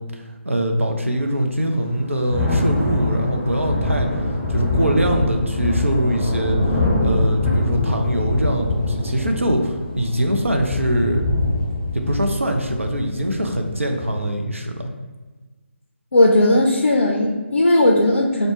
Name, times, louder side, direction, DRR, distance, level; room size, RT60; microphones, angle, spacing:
voice 1, 0.1-4.1 4.5-6.6 7.0-11.2 11.9-14.9, equal, 80° right, 3 dB, 0.5 m, -22 dB
Thunder / Rain, 1.8-14.2, left 2 dB, 5° left, 0.6 m, -24 dB
voice 2, 16.1-18.5, left 1 dB, 70° left, 0 dB, 0.4 m, -16 dB
4.0 x 2.1 x 3.0 m, 1.3 s
figure-of-eight pair, 145°, 7 cm